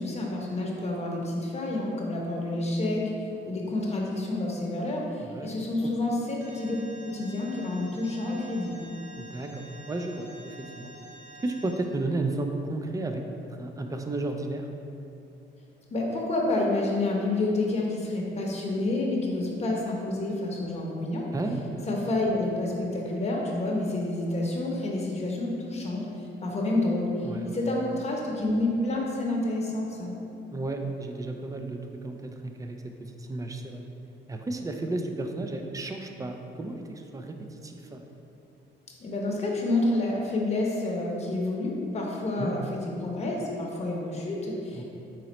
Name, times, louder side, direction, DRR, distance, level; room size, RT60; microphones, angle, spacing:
voice 1, 0.0-3.1 3.4-6.8 7.0-8.8 15.9-21.3 21.9-26.1 26.4-30.1 39.0-44.8, left 2 dB, 35° left, -2 dB, 0.9 m, -29 dB
voice 2, 5.2-5.5 5.8-5.9 9.2-10.9 11.4-13.2 13.6-14.7 21.3-21.9 27.2-27.7 30.5-32.8 33.2-33.8 34.3-38.0 42.4-42.5 44.7-44.8, right 2 dB, 15° right, 4 dB, 0.4 m, -33 dB
Alarm, 6.4-11.7, right 1 dB, 65° right, 1.0 m, -47 dB
4.2 x 3.8 x 3.0 m, 2.7 s
cardioid pair, 90°, 20 cm